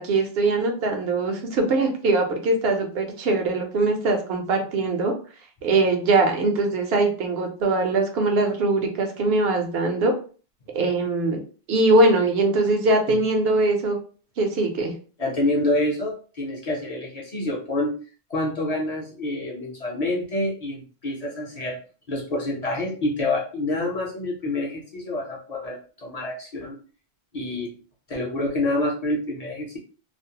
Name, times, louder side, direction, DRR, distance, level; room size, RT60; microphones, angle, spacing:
voice 1, 0.0-5.1 5.6-10.1 10.7-11.4 11.7-14.0 14.4-14.9, right 2 dB, 75° right, 4 dB, 0.8 m, -22 dB
voice 2, 15.2-17.9 18.3-21.8 22.1-26.8 27.3-27.7 28.1-29.8, left 1 dB, 45° left, -3 dB, 0.7 m, -27 dB
2.5 x 2.0 x 2.7 m, 0.39 s
omnidirectional pair, 1.0 m